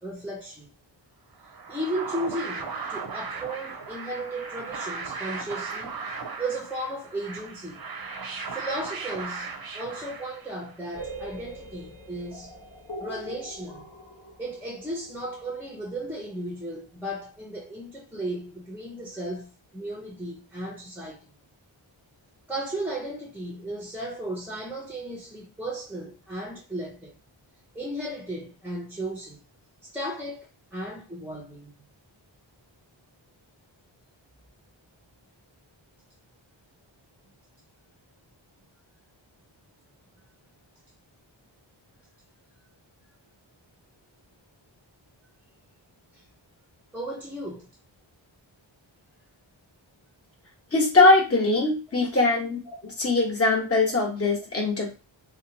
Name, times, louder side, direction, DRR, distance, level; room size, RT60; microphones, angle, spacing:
voice 1, 0.0-0.7 1.7-6.0 6.4-7.8 8.5-12.6 13.0-13.9 14.4-21.3 22.5-27.2 27.7-29.4 29.8-31.7 46.1-46.2 46.9-47.7 51.5-51.6 52.7-52.8 53.5-53.6, right 1 dB, 5° right, 0.5 m, -35 dB
sound 1, 1.4-10.8, right 4 dB, 50° right, 0.5 m, -37 dB
sound 2, 10.9-16.7, right 1 dB, 45° left, 1.3 m, -43 dB
voice 2, 50.7-52.6 53.0-54.9, left 3 dB, 30° left, 1.0 m, -21 dB
2.7 x 2.2 x 2.7 m
wide cardioid pair, 55°, 48 cm